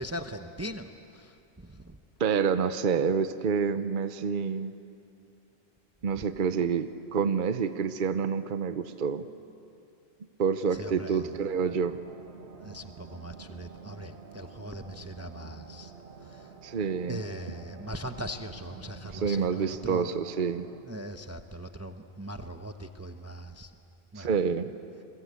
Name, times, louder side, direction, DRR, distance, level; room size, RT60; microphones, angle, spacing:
voice 1, 0.0-2.0 10.7-11.4 12.6-15.9 16.2-16.5 17.1-20.1 20.8-23.7 24.1-24.3, equal, 15° right, 7 dB, 0.8 m, -40 dB
voice 2, 2.2-4.7 6.0-9.3 10.4-12.0 16.6-17.2 19.1-20.7 24.2-24.7, right 6 dB, 55° right, 10 dB, 0.9 m, -28 dB
sound 1, 10.8-20.8, right 6 dB, 85° right, 1.6 m, -48 dB
30.0 x 22.0 x 8.3 m, 2.5 s
omnidirectional pair, 1.1 m